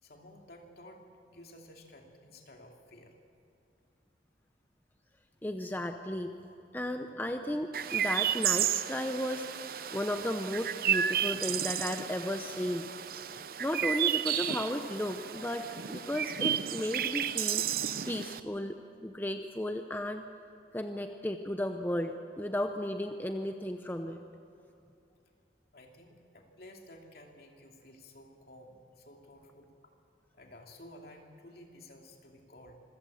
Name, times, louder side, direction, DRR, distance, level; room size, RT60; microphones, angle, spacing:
voice 1, 0.0-3.2 18.4-18.5 25.7-29.7 30.3-32.8, left 1 dB, 55° left, 2 dB, 2.8 m, -53 dB
voice 2, 5.4-6.3 6.7-12.9 13.6-17.7 18.0-18.8 19.0-20.2 20.7-24.2, left 1 dB, 10° left, 6 dB, 0.7 m, -34 dB
Chirp tweet, 7.7-18.4, right 9 dB, 55° right, 0.6 m, -32 dB
25.5 x 16.0 x 7.8 m, 2.7 s
head